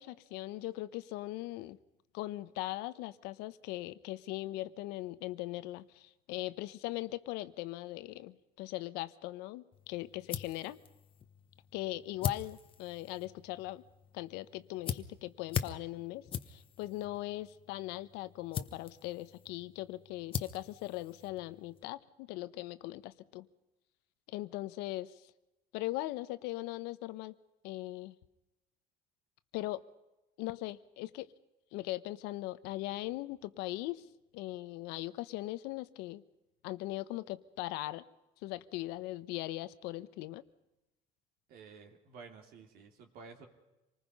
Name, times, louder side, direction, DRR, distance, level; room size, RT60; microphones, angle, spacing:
voice 1, 0.0-1.8 2.1-10.8 11.7-13.8 14.1-23.5 24.3-25.2 25.7-27.3 27.6-28.1 29.5-29.9 30.4-31.3 31.7-34.1 34.3-36.2 36.6-38.0 38.4-40.4, left 17 dB, 85° left, 14 dB, 1.0 m, -40 dB
sound 1, 9.7-21.8, left 8 dB, 30° left, 1.0 m, -43 dB
voice 2, 41.5-43.5, right 5 dB, 65° right, 4 dB, 2.9 m, -52 dB
26.5 x 20.0 x 5.5 m, 0.98 s
cardioid pair, 140°, 17 cm